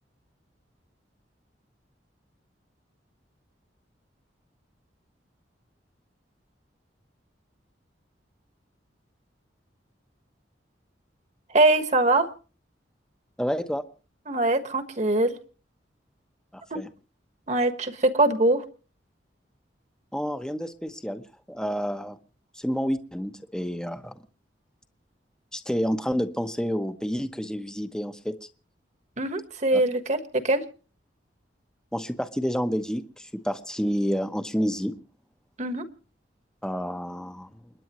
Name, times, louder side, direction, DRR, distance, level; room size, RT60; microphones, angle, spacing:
voice 1, 11.5-12.3 14.3-15.3 16.7-16.8 17.5-18.6 29.2-30.6 35.6-35.9, right 2 dB, 40° right, 8 dB, 1.4 m, -22 dB
voice 2, 13.4-13.8 16.5-16.9 20.1-21.2 21.5-22.2 22.5-24.1 25.5-28.3 29.7-29.8 31.9-35.0 36.6-37.5, equal, 5° left, 8 dB, 0.9 m, -29 dB
29.5 x 10.0 x 3.0 m, 0.37 s
head